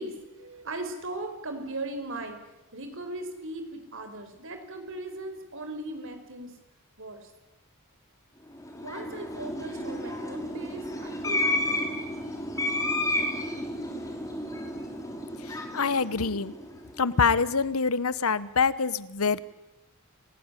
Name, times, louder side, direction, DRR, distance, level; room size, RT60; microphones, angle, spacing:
voice 1, 0.0-2.4 2.7-6.5 7.0-7.3 8.8-11.9, right 2 dB, 60° right, 7 dB, 4.9 m, -38 dB
sound 1, 8.5-17.1, left 1 dB, 15° left, 4.6 m, -32 dB
voice 2, 15.7-16.5 17.0-19.4, left 5 dB, 75° left, 17 dB, 1.1 m, -25 dB
28.5 x 17.5 x 10.0 m, 1.0 s
head